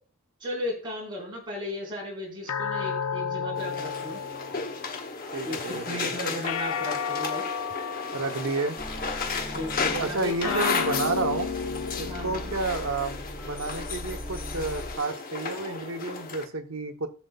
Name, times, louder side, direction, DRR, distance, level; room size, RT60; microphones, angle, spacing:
voice 1, 0.4-4.2 5.4-7.4 9.5-10.7 12.0-12.5, left 1 dB, 20° right, -4 dB, 4.6 m, -35 dB
sound 1, 2.5-5.1 6.4-9.0 10.4-13.0, left 6 dB, 75° left, 0.4 m, -33 dB
sound 2, 3.5-16.5, left 4 dB, 40° left, 0.9 m, -34 dB
voice 2, 5.3-6.1 8.1-8.8 10.0-11.7 12.0-17.1, right 3 dB, 65° right, 5 dB, 1.0 m, -31 dB
sound 3, 8.8-15.0, equal, 5° left, 0.5 m, -40 dB
17.5 x 6.6 x 2.4 m, 0.40 s
head